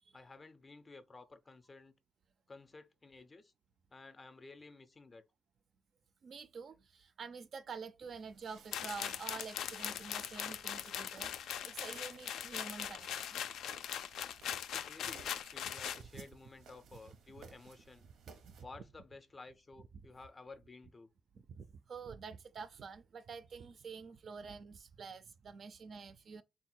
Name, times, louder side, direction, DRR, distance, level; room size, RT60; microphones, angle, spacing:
voice 1, 0.1-1.9 2.5-3.5 3.9-5.2 14.7-18.1 18.6-21.1, left 3 dB, 25° left, 0.4 m, -54 dB
voice 2, 6.2-13.5 16.1-16.3 18.3-18.7 21.3-26.4, right 5 dB, 45° right, 0.3 m, -48 dB
sound 1, 8.0-18.6, right 5 dB, 90° right, 0.8 m, -59 dB
sound 2, 8.7-16.0, left 9 dB, 90° left, 0.3 m, -41 dB
3.8 x 2.2 x 4.3 m
cardioid pair, 145°, 0 cm